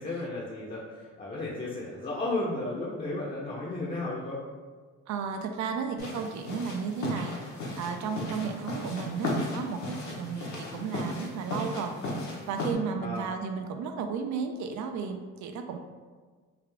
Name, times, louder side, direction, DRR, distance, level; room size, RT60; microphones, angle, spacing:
voice 1, 0.0-4.4 10.2-10.9 13.0-13.3, left 2 dB, 30° left, -6 dB, 0.6 m, -34 dB
voice 2, 5.1-7.4 7.8-12.0 12.5-15.8, right 6 dB, 70° right, 6 dB, 0.4 m, -33 dB
sound 1, 6.0-12.7, left 1 dB, 70° left, 0.9 m, -35 dB
3.4 x 2.4 x 3.3 m, 1.5 s
cardioid pair, 90°, 30 cm